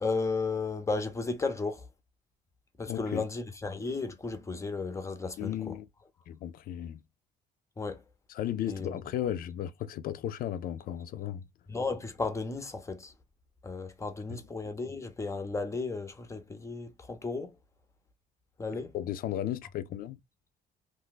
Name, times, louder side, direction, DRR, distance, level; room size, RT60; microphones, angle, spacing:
voice 1, 0.0-1.9 2.8-5.8 7.8-8.0 8.7-8.9 11.7-13.1 13.6-17.5 18.6-18.9, left 3 dB, 15° left, 0.6 m, -34 dB
voice 2, 2.9-3.2 5.4-5.9 6.3-7.0 8.3-11.4 14.3-14.4 18.7-20.2, left 11 dB, 60° left, 0.4 m, -35 dB
2.6 x 2.2 x 3.8 m
cardioid pair, 110°, 17 cm